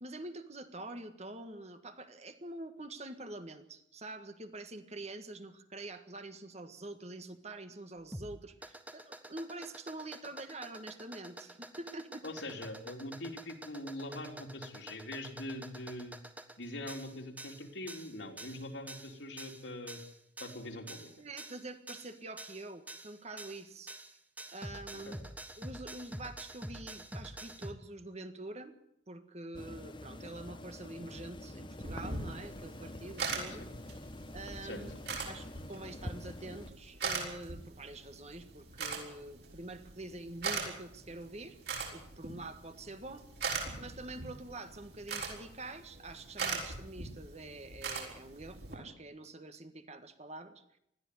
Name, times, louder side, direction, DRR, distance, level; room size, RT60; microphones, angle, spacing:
voice 1, 0.0-12.2 21.2-23.9 24.5-25.2 25.6-28.7 29.1-33.7 34.3-34.9 35.3-41.6 41.9-43.3 43.8-50.8, right 2 dB, 35° right, 9 dB, 1.6 m, -46 dB
sound 1, 8.0-27.7, right 1 dB, 10° right, 1.3 m, -47 dB
voice 2, 12.2-16.2 16.6-20.0 20.4-21.1 25.1-25.2 34.6-34.8, left 1 dB, 70° left, 2 dB, 3.6 m, -43 dB
sound 2, 29.5-36.7, left 1 dB, 25° left, 1.1 m, -46 dB
sound 3, 31.8-48.8, right 4 dB, 60° right, 6.2 m, -41 dB
20.5 x 14.0 x 9.6 m, 0.75 s
head